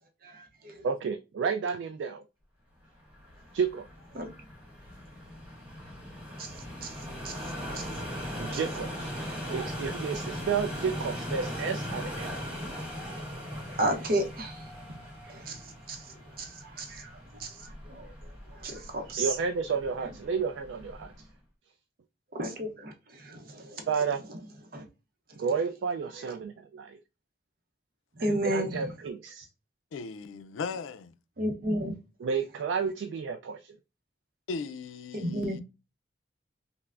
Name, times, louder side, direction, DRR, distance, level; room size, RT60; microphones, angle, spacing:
voice 1, 0.2-0.7 4.1-4.3 6.4-6.5 6.8-7.0 7.2-7.4 7.7-7.9 13.7-14.6 15.3-15.6 15.9-16.0 16.4-18.1 18.6-19.3 22.3-23.9 24.7-24.8 25.3-25.4 28.2-28.9 31.4-31.9 35.1-35.6, right 1 dB, 50° right, 0.7 m, -33 dB
voice 2, 0.8-2.2 3.5-3.9 8.4-9.1 9.5-12.3 19.2-21.1 23.9-24.2 25.4-27.0 28.2-29.5 32.2-33.8, right 6 dB, 75° right, 0.3 m, -31 dB
sound 1, 3.0-21.3, equal, 5° right, 1.4 m, -39 dB
voice 3, 29.9-31.1 34.5-35.6, left 4 dB, 85° left, 0.4 m, -37 dB
5.4 x 2.0 x 2.4 m
head